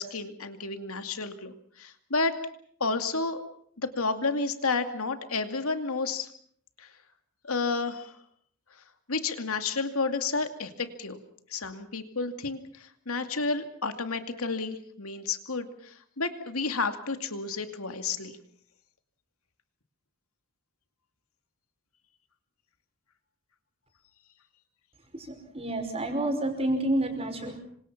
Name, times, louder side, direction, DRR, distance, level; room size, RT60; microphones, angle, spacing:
voice 1, 0.0-2.4 2.8-3.4 3.8-6.3 6.8-6.9 7.4-8.2 9.1-11.2 11.5-18.4, left 4 dB, 85° left, 7 dB, 2.5 m, -31 dB
voice 2, 25.1-27.6, right 1 dB, 30° right, 5 dB, 5.5 m, -29 dB
27.5 x 26.0 x 6.0 m, 0.63 s
head